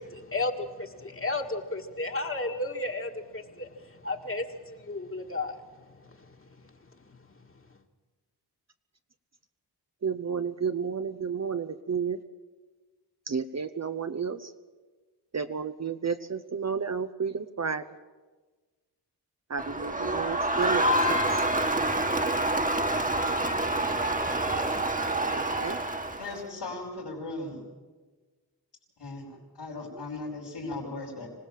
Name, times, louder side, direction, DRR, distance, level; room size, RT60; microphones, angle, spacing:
voice 1, 0.0-7.2 7.5-7.6, left 2 dB, 30° left, 3 dB, 1.9 m, -34 dB
voice 2, 10.0-12.2 13.3-14.5 15.3-17.8 19.5-21.4 25.3-25.8, right 6 dB, 40° right, 9 dB, 0.9 m, -32 dB
Crowd, 19.6-26.4, right 1 dB, 20° right, 1.6 m, -27 dB
voice 3, 26.2-27.6 29.0-31.3, left 2 dB, 75° left, -5 dB, 5.0 m, -37 dB
25.5 x 18.0 x 7.5 m, 1.3 s
wide cardioid pair, 95°, 42 cm